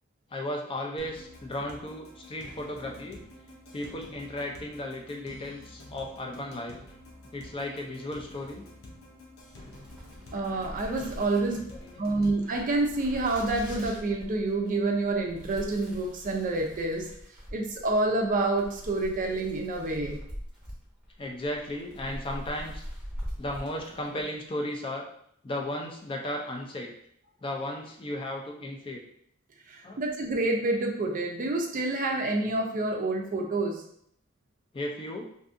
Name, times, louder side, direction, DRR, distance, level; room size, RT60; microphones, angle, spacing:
voice 1, 0.3-3.2 3.7-6.8 7.3-8.6 11.9-12.3 21.2-22.8 23.4-25.0 25.4-26.9 27.4-29.0 29.8-30.0 34.7-35.2, left 1 dB, 25° left, 1 dB, 0.3 m, -35 dB
sound 1, 1.0-12.4, left 1 dB, 75° left, 0.6 m, -49 dB
sound 2, 9.4-24.3, equal, 5° right, 0.9 m, -43 dB
voice 2, 10.3-11.7 12.0-17.1 17.5-20.2 29.7-33.8, right 2 dB, 40° right, 1 dB, 0.4 m, -28 dB
2.6 x 2.5 x 2.5 m, 0.68 s
head